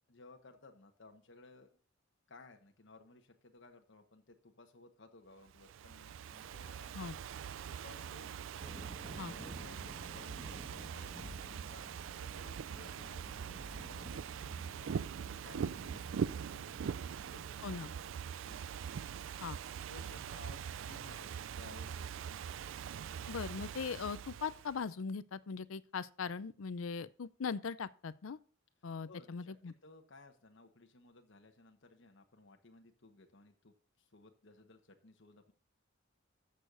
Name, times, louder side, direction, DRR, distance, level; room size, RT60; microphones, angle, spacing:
voice 1, 0.1-1.7 2.3-7.1 7.7-8.3 9.2-18.1 18.4-18.6 19.9-22.3 29.0-35.5, left 3 dB, 65° left, 1.3 m, -59 dB
Ocean / Fireworks, 5.5-24.8, right 7 dB, 65° right, 0.3 m, -43 dB
sound 1, 8.6-18.1, equal, 20° right, 1.5 m, -53 dB
voice 2, 23.3-28.4 28.8-29.7, left 5 dB, 80° left, 0.5 m, -40 dB
14.0 x 6.5 x 2.6 m
head